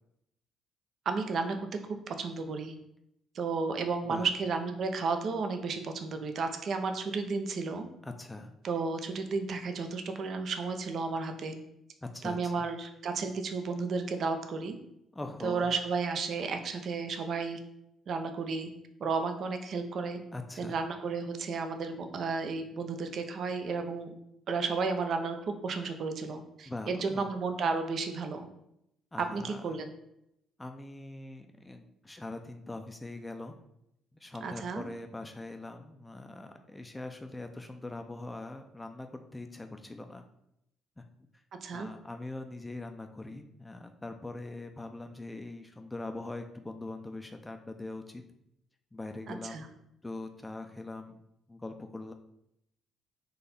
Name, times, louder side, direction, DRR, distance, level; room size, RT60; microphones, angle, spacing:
voice 1, 1.1-1.7 2.2-2.7 3.3-7.9 8.6-11.6 12.2-14.8 15.4-17.6 18.1-18.7 19.0-20.2 20.6-24.1 24.5-28.5 29.2-29.9 34.4-34.8 41.6-41.9 49.3-49.7, right 4 dB, 60° right, 6 dB, 0.6 m, -33 dB
voice 2, 8.0-8.5 12.0-12.6 15.1-15.7 20.3-20.8 26.7-27.3 29.1-29.8 30.6-33.5 34.1-40.2 41.0-41.1 41.7-48.2 48.9-49.7 50.0-51.2 51.5-52.1, left 2 dB, 15° left, 5 dB, 0.5 m, -42 dB
4.0 x 2.7 x 4.1 m, 0.79 s
hypercardioid pair, 55°, 0 cm